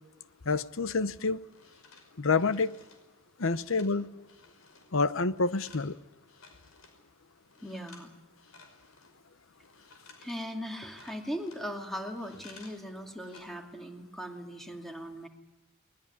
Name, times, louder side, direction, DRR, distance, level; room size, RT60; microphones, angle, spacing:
voice 1, 0.5-1.4 2.2-2.7 3.4-4.1 4.9-6.0, left 4 dB, 65° left, 0.9 m, -28 dB
sound 1, 1.4-4.9 5.2-7.0 7.4-8.1 8.4-12.8 13.1-13.4, left 4 dB, 90° left, 5.5 m, -56 dB
voice 2, 7.6-8.1 10.2-15.3, equal, ahead, 2.7 m, -39 dB
20.5 x 20.5 x 9.9 m
head